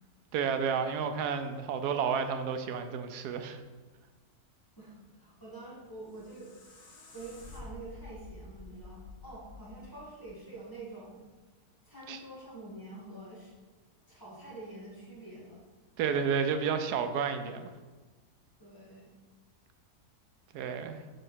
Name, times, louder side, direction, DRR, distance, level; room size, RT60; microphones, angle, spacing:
voice 1, 0.3-3.6 12.1-12.2 16.0-17.7 20.5-21.0, right 6 dB, 90° right, 8 dB, 1.2 m, -31 dB
voice 2, 4.8-6.5 7.1-11.2 11.9-13.5 14.1-15.6 18.6-19.1, right 2 dB, 15° left, -7 dB, 2.2 m, -46 dB
sound 1, 5.9-10.9, left 3 dB, 85° left, 1.8 m, -50 dB
5.5 x 5.2 x 5.6 m, 1.3 s
omnidirectional pair, 1.6 m